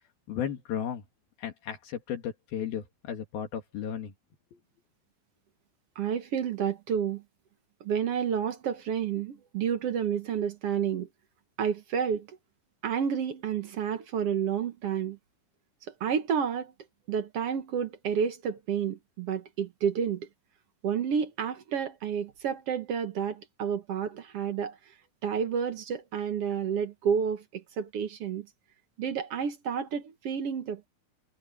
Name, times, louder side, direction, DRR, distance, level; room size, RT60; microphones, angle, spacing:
voice 1, 0.3-1.0 1.4-4.1 4.5-4.6, left 9 dB, 75° left, 4.0 m, -34 dB
voice 2, 5.9-7.2 7.8-11.1 11.6-12.4 12.8-15.2 16.0-16.7 17.1-20.3 20.8-24.8 25.2-28.5 29.0-30.9, right 7 dB, 60° right, 1.6 m, -30 dB
omnidirectional pair, 4.4 m